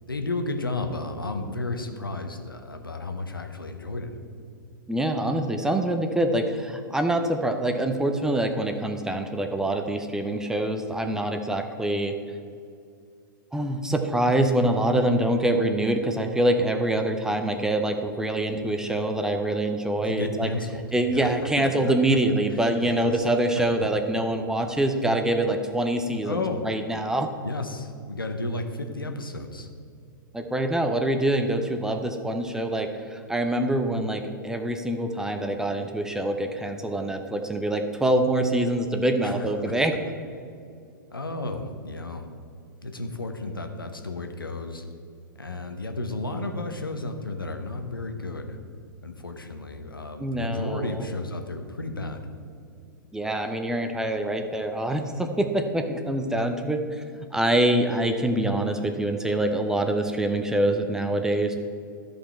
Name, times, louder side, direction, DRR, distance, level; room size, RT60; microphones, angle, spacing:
voice 1, 0.1-4.2 20.0-21.3 21.6-22.2 22.8-23.3 23.8-23.9 26.2-26.6 27.4-29.7 39.2-39.7 41.1-42.2 42.8-44.8 45.4-48.6 49.0-52.2, left 2 dB, 85° left, 5 dB, 1.0 m, -33 dB
voice 2, 4.9-12.2 13.5-20.5 20.9-26.4 26.6-27.3 30.3-40.0 50.2-51.1 53.1-61.6, right 1 dB, 5° right, 5 dB, 0.6 m, -25 dB
13.0 x 5.3 x 4.4 m, 2.4 s
figure-of-eight pair, 105°, 11 cm